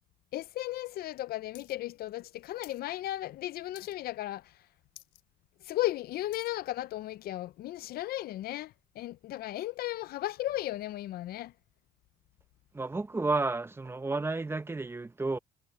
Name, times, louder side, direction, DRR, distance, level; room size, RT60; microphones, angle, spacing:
voice 1, 0.3-4.6 5.6-11.5, left 15 dB, 65° left, 0.5 m, -35 dB
sound 1, 1.5-1.8 2.0-2.8 3.2-3.4 3.7-4.2 4.6-4.7 4.9-5.2 5.7-6.6 7.2-7.3, left 16 dB, 80° left, 3.9 m, -54 dB
voice 2, 12.7-15.4, right 3 dB, 15° right, 0.9 m, -31 dB
cardioid pair, 110°, 17 cm